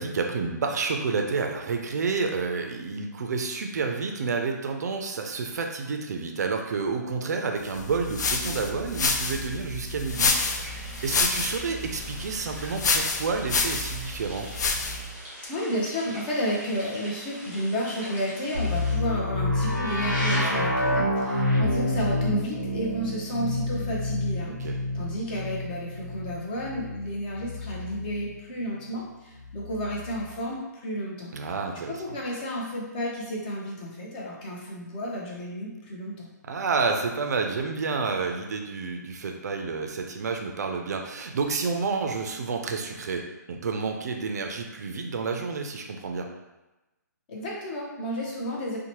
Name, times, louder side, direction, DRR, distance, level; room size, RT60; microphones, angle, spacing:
voice 1, 0.0-14.5 24.5-24.8 31.3-32.2 36.4-46.3, right 4 dB, 60° right, 3 dB, 0.4 m, -30 dB
sound 1, 7.7-15.1, left 4 dB, 65° left, 0.4 m, -28 dB
sound 2, 10.1-18.9, equal, 15° right, 0.7 m, -44 dB
voice 2, 15.5-24.6 24.9-31.3 31.9-36.3 47.3-48.8, equal, 30° left, -3 dB, 0.6 m, -32 dB
sound 3, 18.5-28.4 29.4-30.4, left 1 dB, 90° left, 0.8 m, -28 dB
2.8 x 2.1 x 2.9 m, 1.0 s
hypercardioid pair, 160°, 10 cm